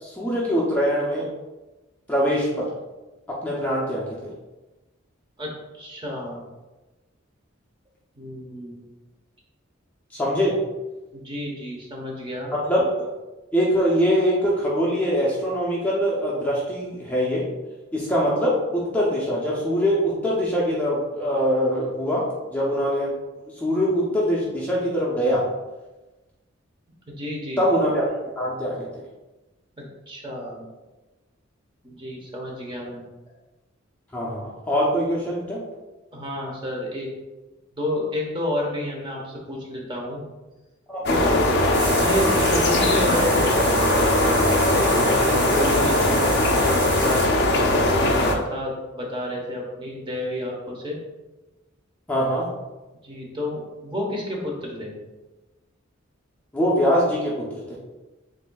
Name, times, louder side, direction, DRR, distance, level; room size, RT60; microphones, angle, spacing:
voice 1, 0.0-1.3 2.1-2.7 3.3-4.3 10.1-10.6 12.5-13.1 13.5-17.4 17.9-22.2 22.5-23.1 23.6-25.4 27.6-28.0 28.4-28.9 34.1-35.6 40.9-41.5 45.5-45.9 52.1-52.5 56.5-57.8, equal, 10° left, -6 dB, 0.6 m, -23 dB
voice 2, 5.8-6.4 8.2-8.8 11.1-12.5 27.1-27.6 29.8-30.7 31.8-33.0 36.1-37.1 37.8-40.2 41.1-41.4 41.8-44.5 45.0-51.0 53.0-54.9, left 1 dB, 25° right, -1 dB, 1.0 m, -31 dB
sound 1, 41.1-48.4, left 1 dB, 55° left, 0.5 m, -20 dB
sound 2, 41.7-47.3, right 5 dB, 40° right, 0.5 m, -32 dB
7.5 x 2.7 x 2.3 m, 1.1 s
head